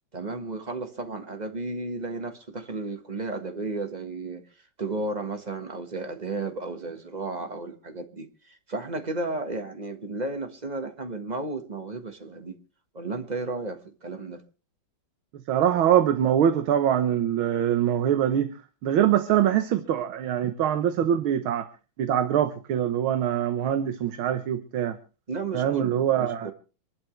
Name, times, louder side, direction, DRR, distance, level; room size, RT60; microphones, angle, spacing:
voice 1, 0.1-4.4 4.8-12.6 12.9-14.4 25.3-26.5, right 3 dB, 25° right, 1.3 m, -33 dB
voice 2, 15.5-18.5 18.8-21.7 22.0-25.0 25.5-26.5, right 10 dB, 80° right, 1.8 m, -23 dB
26.5 x 11.5 x 3.2 m
omnidirectional pair, 2.2 m